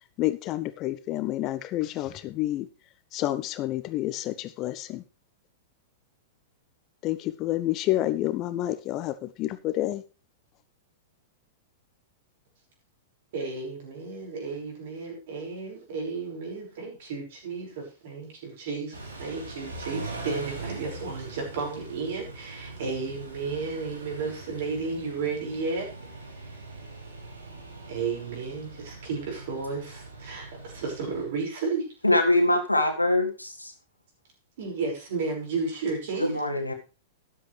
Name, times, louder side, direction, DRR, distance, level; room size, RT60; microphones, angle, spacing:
voice 1, 0.2-2.7 3.1-5.0 7.0-10.0, left 15 dB, 35° left, 14 dB, 0.7 m, -29 dB
voice 2, 13.3-25.9 26.4-26.6 27.9-31.9 34.6-36.4, right 4 dB, 50° right, 1 dB, 5.7 m, -33 dB
Car / Idling / Accelerating revving vroom, 18.9-31.2, right 3 dB, 75° right, 3.7 m, -41 dB
voice 3, 32.0-33.7 36.2-36.7, left 1 dB, 85° left, 5 dB, 1.8 m, -23 dB
13.0 x 11.0 x 3.4 m, 0.32 s
figure-of-eight pair, 100°, 0 cm